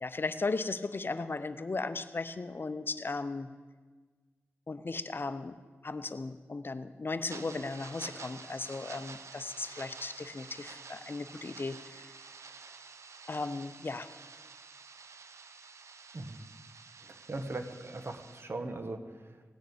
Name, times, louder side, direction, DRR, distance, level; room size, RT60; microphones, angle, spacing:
voice 1, 0.0-3.5 4.7-5.6 5.8-12.1 13.3-14.1, left 3 dB, 45° left, 12 dB, 0.7 m, -36 dB
sound 1, 7.3-18.4, right 5 dB, 80° right, 0.7 m, -50 dB
voice 2, 17.0-19.4, right 2 dB, 50° right, 7 dB, 1.3 m, -40 dB
17.5 x 6.5 x 8.6 m, 1.4 s
cardioid pair, 55°, 5 cm